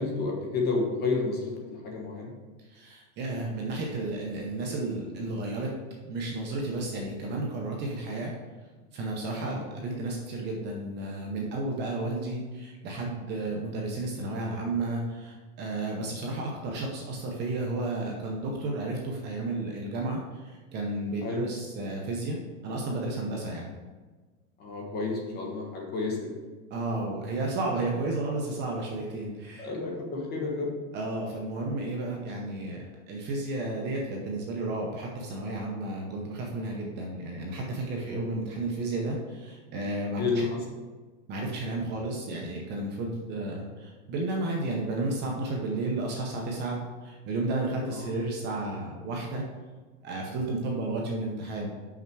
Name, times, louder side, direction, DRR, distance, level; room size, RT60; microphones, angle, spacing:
voice 1, 0.0-2.3 9.4-9.6 21.2-21.4 24.6-26.3 29.6-30.7 37.9-38.3 40.2-40.6 47.9-48.1, left 3 dB, 25° left, 0 dB, 1.2 m, -31 dB
voice 2, 2.6-5.7 6.0-8.3 8.9-23.7 26.7-29.7 30.9-40.5 41.3-49.4 50.0-51.8, right 2 dB, 25° right, -1 dB, 0.8 m, -32 dB
5.9 x 5.8 x 4.7 m, 1.3 s
supercardioid pair, 160°, 41 cm